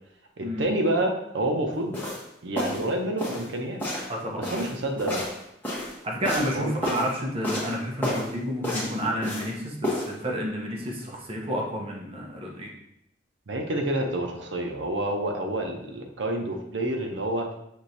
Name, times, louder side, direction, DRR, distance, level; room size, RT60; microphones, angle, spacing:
voice 1, 0.4-2.0 2.4-3.8 4.3-5.2 6.5-6.7 13.5-17.5, right 1 dB, 75° right, 3 dB, 0.7 m, -28 dB
sound 1, 1.9-2.2 2.6-2.9 3.2-3.5 3.8-4.1 4.4-5.9 6.2-6.5 6.8-7.1 7.4-7.7 8.0-8.3 8.6-9.5 9.8-10.1, left 1 dB, 10° left, 1.2 m, -30 dB
voice 2, 4.1-4.5 6.0-12.7, equal, 30° right, -2 dB, 0.8 m, -30 dB
6.2 x 3.1 x 2.7 m, 0.79 s
head